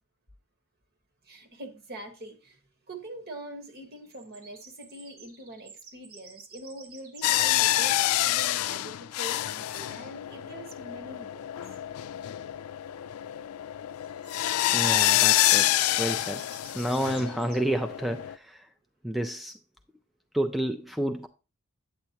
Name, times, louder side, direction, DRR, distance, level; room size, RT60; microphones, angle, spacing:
voice 1, 1.2-2.6 2.9-11.4, right 1 dB, 45° right, 1.4 m, -43 dB
sound 1, 3.8-7.7 13.9-17.6, right 5 dB, 80° right, 2.0 m, -51 dB
sound 2, 7.2-18.3, left 14 dB, 85° left, 0.4 m, -27 dB
voice 2, 14.7-15.7 16.0-16.4 16.8-18.7 19.0-19.5 20.3-21.3, right 1 dB, ahead, 0.3 m, -30 dB
8.7 x 8.0 x 2.9 m
head